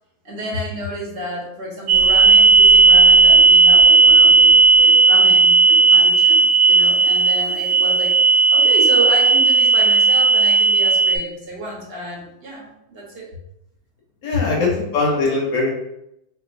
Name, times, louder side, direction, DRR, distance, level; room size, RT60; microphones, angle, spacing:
voice 1, 0.2-13.3 14.3-14.4, equal, 45° right, -3 dB, 1.1 m, -31 dB
sound 1, 1.9-11.2, right 4 dB, 70° right, 0.9 m, -13 dB
voice 2, 14.2-15.7, left 3 dB, 65° left, -2 dB, 1.4 m, -20 dB
4.3 x 2.9 x 2.5 m, 0.83 s
omnidirectional pair, 1.5 m